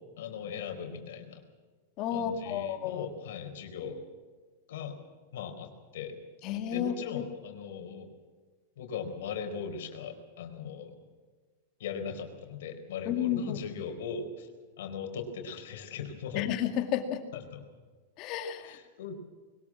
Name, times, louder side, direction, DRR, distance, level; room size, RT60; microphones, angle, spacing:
voice 1, 0.2-1.4 2.1-4.0 4.7-4.9 5.3-6.1 6.7-8.1 8.8-11.0 11.8-14.5 14.8-16.5 17.5-17.6 18.6-19.1, left 6 dB, 70° left, 5 dB, 4.3 m, -39 dB
voice 2, 2.0-3.1 6.4-7.3 13.1-13.6 16.3-17.2 18.2-18.8, left 10 dB, 35° left, 6 dB, 2.3 m, -32 dB
22.0 x 19.5 x 7.6 m, 1.4 s
supercardioid pair, 165°, 0 cm